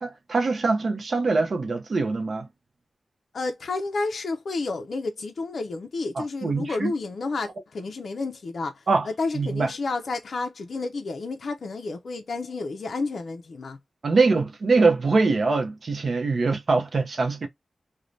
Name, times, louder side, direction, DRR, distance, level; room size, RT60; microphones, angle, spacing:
voice 1, 0.0-2.5 6.2-6.9 8.9-9.1 9.3-9.7 14.0-17.5, right 3 dB, 60° right, 0.5 m, -23 dB
voice 2, 3.3-13.8, left 3 dB, 70° left, 0.4 m, -31 dB
2.5 x 2.1 x 3.1 m
wide cardioid pair, 115°, 0 cm